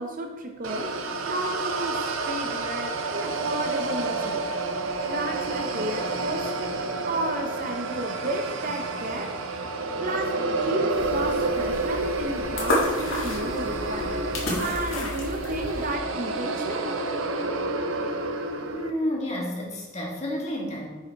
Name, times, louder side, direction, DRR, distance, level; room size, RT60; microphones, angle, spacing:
voice 1, 0.0-4.4 5.1-6.7 7.0-9.4 10.0-14.2 14.6-16.9, right 1 dB, 40° right, 4 dB, 0.6 m, -32 dB
sound 1, 0.6-18.9, right 2 dB, 85° right, 0.6 m, -29 dB
sound 2, 10.9-16.0, left 1 dB, 90° left, 1.7 m, -31 dB
voice 2, 18.7-20.9, left 1 dB, 35° left, -2 dB, 1.5 m, -30 dB
5.9 x 5.2 x 4.5 m, 1.2 s
head